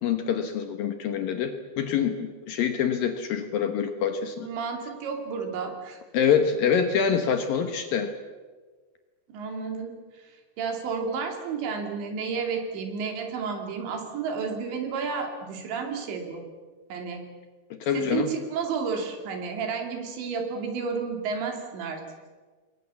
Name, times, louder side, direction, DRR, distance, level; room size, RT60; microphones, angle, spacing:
voice 1, 0.0-4.5 6.1-8.1 17.8-18.3, left 7 dB, 65° left, 7 dB, 2.5 m, -25 dB
voice 2, 4.4-6.0 9.3-16.4 16.9-17.2 17.9-22.0, right 5 dB, 75° right, 4 dB, 5.1 m, -31 dB
28.5 x 21.5 x 7.2 m, 1.4 s
omnidirectional pair, 5.2 m